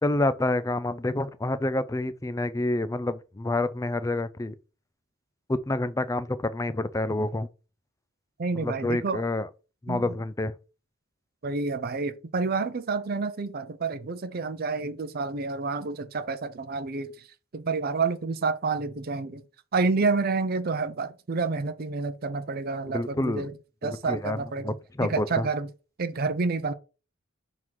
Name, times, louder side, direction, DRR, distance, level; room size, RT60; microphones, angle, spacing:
voice 1, 0.0-4.5 5.5-7.5 8.5-9.5 9.8-10.5 22.9-23.5 23.8-24.4 24.6-25.5, left 2 dB, 15° left, 0.4 m, -28 dB
voice 2, 8.4-9.2 9.9-10.2 11.4-17.1 17.5-19.4 19.7-23.5 23.8-25.7 26.0-26.7, right 4 dB, 45° right, 0.5 m, -29 dB
6.0 x 3.7 x 4.7 m
head